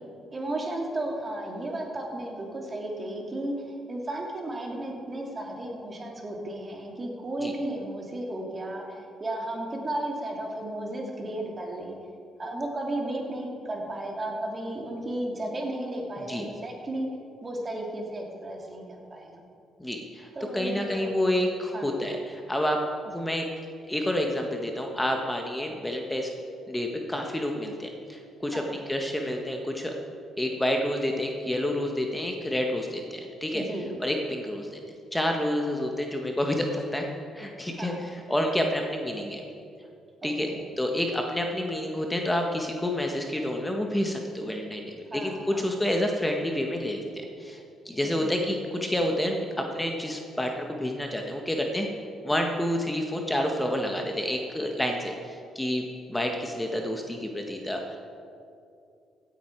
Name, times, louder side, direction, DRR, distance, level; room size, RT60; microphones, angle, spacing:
voice 1, 0.3-12.0 12.4-17.1 17.4-19.4 20.3-21.1 21.7-22.0 28.5-28.7 33.5-33.9 37.8-38.0 40.2-40.6 45.1-45.6 48.2-48.3, right 1 dB, 35° right, 0 dB, 2.9 m, -34 dB
voice 2, 19.8-20.3 20.5-22.8 23.1-23.5 23.9-26.3 26.7-29.9 30.4-33.6 34.0-34.8 35.1-37.1 37.3-39.4 40.2-40.5 40.8-51.9 52.2-58.0, left 1 dB, 10° left, 2 dB, 1.6 m, -29 dB
16.0 x 9.3 x 4.8 m, 2.5 s
hypercardioid pair, 55°, 0 cm